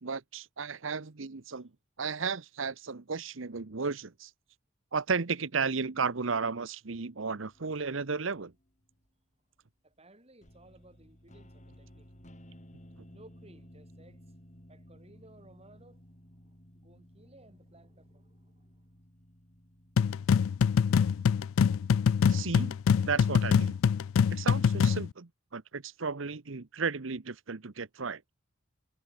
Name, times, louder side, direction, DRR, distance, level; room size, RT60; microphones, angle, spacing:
voice 1, 0.0-1.7 2.0-4.3 4.9-8.5 22.3-22.8 23.0-23.8 24.3-28.2, right 5 dB, 70° right, 1.0 m, -34 dB
sound 1, 7.5-9.1 10.4-24.4, equal, 35° left, 7.3 m, -57 dB
voice 2, 9.8-12.1 13.1-14.2 14.7-18.9, right 1 dB, 30° right, 7.9 m, -59 dB
sound 2, 20.0-25.1, left 7 dB, 85° left, 0.3 m, -24 dB
head